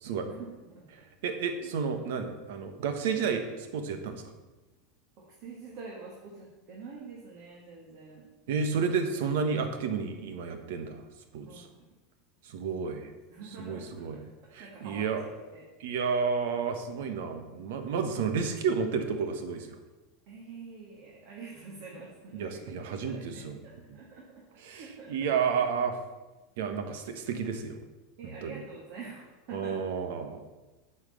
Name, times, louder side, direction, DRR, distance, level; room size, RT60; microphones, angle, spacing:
voice 1, 0.3-0.9 1.6-1.7 5.4-8.2 11.5-11.9 12.8-13.0 13.3-14.2 14.6-15.6 20.3-25.3 26.6-26.7 28.2-29.8, right 4 dB, 50° right, -3 dB, 2.0 m, -46 dB
voice 2, 1.2-4.2 8.5-11.0 11.3-11.7 12.4-13.1 13.6-14.2 14.5-15.2 15.8-19.7 22.3-23.6 24.6-25.9 26.6-27.8 28.2-28.6 29.5-30.5, right 6 dB, 75° right, 7 dB, 1.3 m, -31 dB
8.8 x 4.5 x 7.3 m, 1.1 s
supercardioid pair, 145°, 0 cm